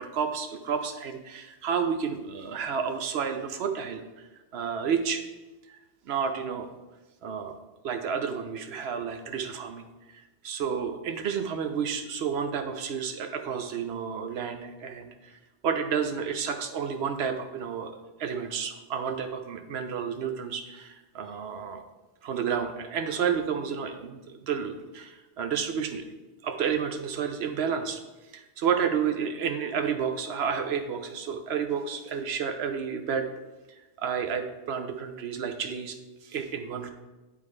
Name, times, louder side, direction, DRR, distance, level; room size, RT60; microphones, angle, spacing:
voice 1, 0.0-4.0 4.5-5.2 6.1-6.7 7.2-7.6 7.8-15.4 15.6-21.8 22.2-26.0 26.4-28.0 28.3-33.3 34.0-36.0 36.2-36.9, right 7 dB, 70° right, 7 dB, 0.9 m, -31 dB
10.5 x 3.7 x 3.2 m, 1.1 s
omnidirectional pair, 1.2 m